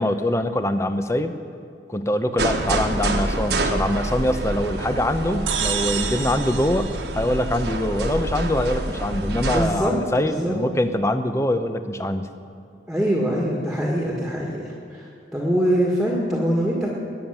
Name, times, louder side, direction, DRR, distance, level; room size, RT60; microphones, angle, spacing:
voice 1, 0.0-1.3 1.9-12.3, left 1 dB, 15° left, 9 dB, 0.7 m, -23 dB
sound 1, 2.4-9.7, right 2 dB, 60° right, 1.4 m, -27 dB
sound 2, 5.5-8.1, right 7 dB, 85° right, 1.2 m, -30 dB
voice 2, 9.5-10.5 12.9-15.0 15.3-16.9, equal, ahead, -3 dB, 1.8 m, -23 dB
21.0 x 7.2 x 9.1 m, 2.5 s
head